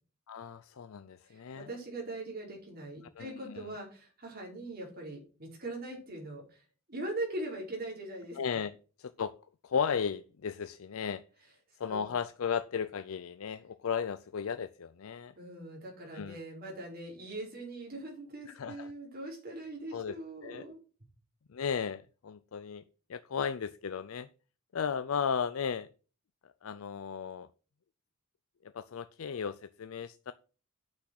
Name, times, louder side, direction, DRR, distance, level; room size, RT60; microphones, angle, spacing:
voice 1, 0.3-1.7 3.2-3.7 8.4-9.3 9.6-11.2 11.8-15.3 16.1-16.4 18.5-18.9 19.9-20.1 20.4-20.7 21.5-22.8 23.1-24.3 24.7-25.9 26.4-27.5 28.7-30.3, left 6 dB, 75° left, 13 dB, 0.5 m, -35 dB
voice 2, 1.3-6.6 6.9-8.6 11.9-12.1 15.3-20.8, right 2 dB, 45° right, -1 dB, 4.9 m, -41 dB
8.5 x 6.2 x 6.3 m, 0.37 s
head